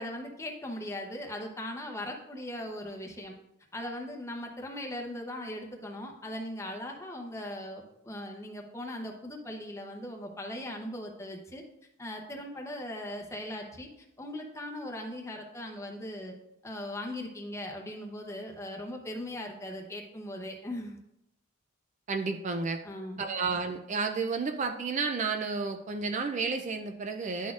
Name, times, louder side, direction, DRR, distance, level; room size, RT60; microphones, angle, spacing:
voice 1, 0.0-3.3 3.7-11.6 12.0-13.9 14.2-16.3 16.6-21.0 22.8-23.3, left 1 dB, 15° left, 1 dB, 0.7 m, -39 dB
voice 2, 22.1-22.8 23.2-27.5, right 4 dB, 35° right, 5 dB, 0.3 m, -31 dB
10.5 x 4.1 x 2.4 m, 0.84 s
head